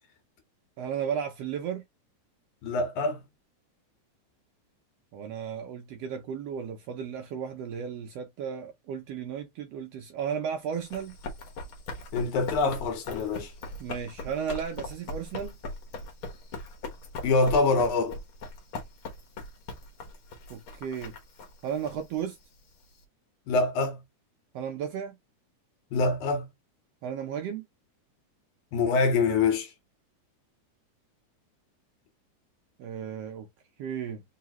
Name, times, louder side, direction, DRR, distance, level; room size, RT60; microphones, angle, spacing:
voice 1, 0.8-1.8 5.1-11.2 13.8-15.6 20.5-21.2 21.6-22.4 24.5-25.2 27.0-27.6 32.8-33.5 33.8-34.2, right 8 dB, 75° right, 1.5 m, -34 dB
voice 2, 2.6-3.2 12.1-13.5 17.2-18.2 23.5-24.0 25.9-26.5 28.7-29.7, left 3 dB, 80° left, 2.5 m, -25 dB
Run, 10.7-23.0, left 2 dB, 55° left, 1.6 m, -40 dB
4.8 x 2.9 x 2.9 m
omnidirectional pair, 3.4 m